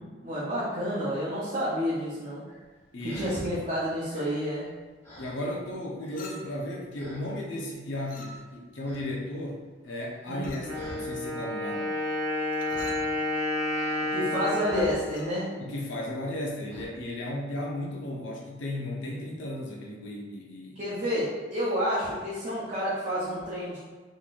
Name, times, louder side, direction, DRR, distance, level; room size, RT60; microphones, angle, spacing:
voice 1, 0.2-2.4 3.1-4.7 10.3-10.5 14.1-15.5 20.7-23.8, equal, 35° right, -10 dB, 0.8 m, -29 dB
sound 1, 2.5-3.5 3.9-5.7 6.0-6.6 6.9-7.4 7.9-8.5 8.8-9.1 9.4-11.1 12.6-13.2 13.7-15.4 15.7-16.0 16.7-16.9, equal, 15° left, 0.8 m, -48 dB
voice 2, 2.9-3.4 5.2-12.0 15.6-20.8, left 1 dB, 85° left, -2 dB, 0.7 m, -35 dB
Chink clink, 6.2-6.7 8.1-8.7 10.4-10.8 12.5-13.1 15.0-15.4, left 3 dB, 45° left, 0.4 m, -47 dB
Wind instrument woodwind instrument, 10.6-16.4, left 1 dB, 70° right, 0.8 m, -31 dB
3.8 x 3.1 x 2.5 m, 1.4 s
head